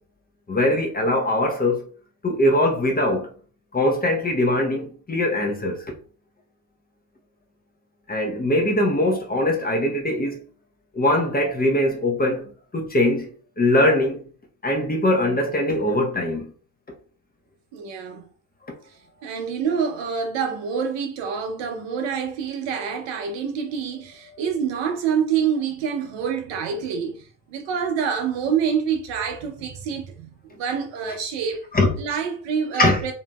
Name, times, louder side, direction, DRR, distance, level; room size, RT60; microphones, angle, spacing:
voice 1, 0.5-1.9 2.2-3.3 3.7-5.9 8.1-10.4 10.9-12.5 12.7-13.3 13.6-14.3 14.6-16.5 18.7-18.8 24.3-24.4 31.7-31.9 32.8-33.0, left 1 dB, 20° left, 0.8 m, -21 dB
voice 2, 17.7-18.3 19.2-31.6 32.0-33.1, right 7 dB, 60° right, 0.8 m, -26 dB
2.7 x 2.6 x 2.2 m
hypercardioid pair, 55°, 49 cm